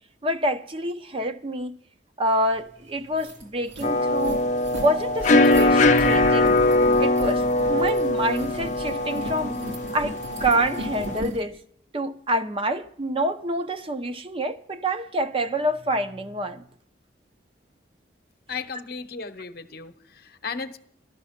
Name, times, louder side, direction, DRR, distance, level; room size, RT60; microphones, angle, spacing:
voice 1, 0.2-1.7 2.2-4.5 4.8-6.5 7.0-9.5 9.9-11.6 11.9-16.6, right 1 dB, 30° right, 0.6 m, -27 dB
sound 1, 2.6-2.7 3.0-11.4, equal, 90° right, 3.0 m, -36 dB
sound 2, 3.8-11.2, left 2 dB, 40° left, 0.5 m, -21 dB
voice 2, 18.5-20.8, left 5 dB, 55° left, 0.9 m, -35 dB
13.0 x 12.5 x 5.8 m
head